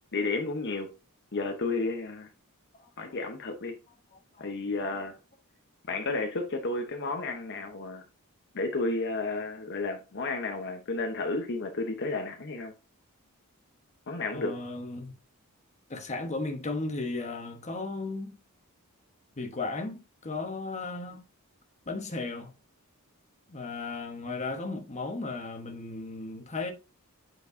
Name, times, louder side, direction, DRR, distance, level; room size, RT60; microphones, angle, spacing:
voice 1, 0.1-0.9 1.3-2.3 3.0-3.8 4.4-5.2 5.9-8.0 8.5-12.7 14.1-14.6, left 3 dB, 55° left, 0.9 m, -32 dB
voice 2, 14.3-15.2 15.9-18.4 19.4-21.2 21.9-22.5 23.5-26.7, left 3 dB, 30° left, 1.1 m, -35 dB
8.2 x 4.5 x 2.6 m
head